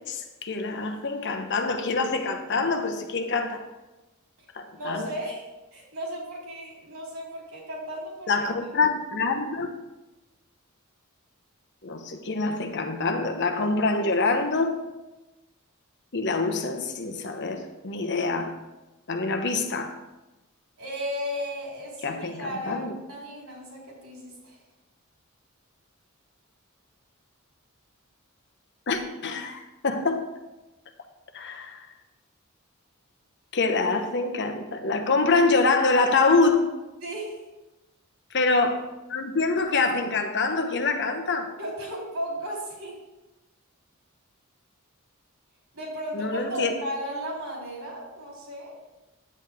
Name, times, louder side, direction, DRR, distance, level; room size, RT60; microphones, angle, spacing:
voice 1, 0.1-3.6 4.5-5.1 8.3-9.7 11.8-14.7 16.1-18.6 19.1-20.0 22.0-23.0 28.9-30.2 31.3-31.9 33.5-36.6 38.3-38.8 39.1-41.5 46.1-46.7, left 3 dB, 55° left, 1.0 m, -25 dB
voice 2, 4.8-5.4 5.7-8.3 20.8-24.6 37.0-37.4 41.6-43.0 45.7-48.7, equal, 75° right, 3.8 m, -35 dB
9.8 x 8.6 x 3.6 m
head